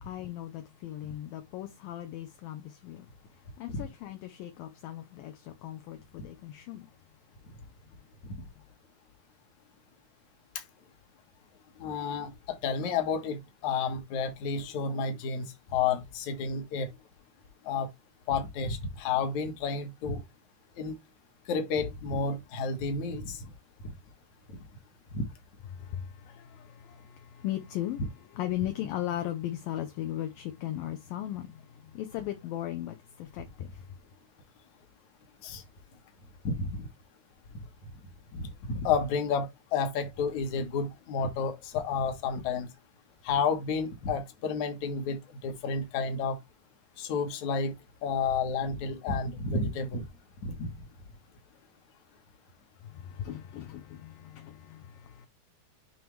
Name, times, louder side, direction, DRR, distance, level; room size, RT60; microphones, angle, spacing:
voice 1, 0.0-3.1 3.6-6.9 25.8-28.0 28.4-33.8 52.9-55.3, left 12 dB, 75° left, 2.2 m, -37 dB
voice 2, 11.8-16.9 17.6-17.9 18.3-20.2 20.8-21.0 21.5-23.5 23.8-23.9 25.1-25.2 35.4-35.6 36.4-36.9 38.3-42.7 43.2-46.4 47.0-47.7 48.0-50.0 50.4-50.7, left 5 dB, 60° left, 2.3 m, -31 dB
9.3 x 3.4 x 3.1 m
omnidirectional pair, 4.5 m